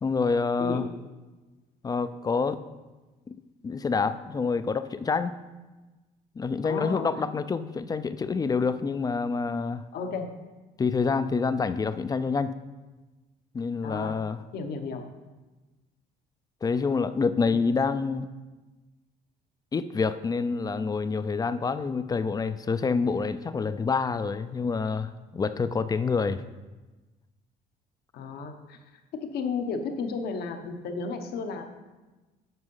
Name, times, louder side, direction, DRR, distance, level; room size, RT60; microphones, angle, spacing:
voice 1, 0.0-0.9 1.8-2.6 3.3-3.4 3.6-5.4 6.4-9.8 10.8-12.5 13.5-14.4 16.6-18.3 19.7-26.4, left 4 dB, 20° left, 12 dB, 0.4 m, -27 dB
voice 2, 6.6-7.1 9.9-10.3 13.8-14.2 14.5-15.0 17.5-17.6 28.1-31.7, left 4 dB, 70° left, 5 dB, 1.0 m, -33 dB
8.0 x 5.5 x 5.5 m, 1.2 s
cardioid pair, 110°, 17 cm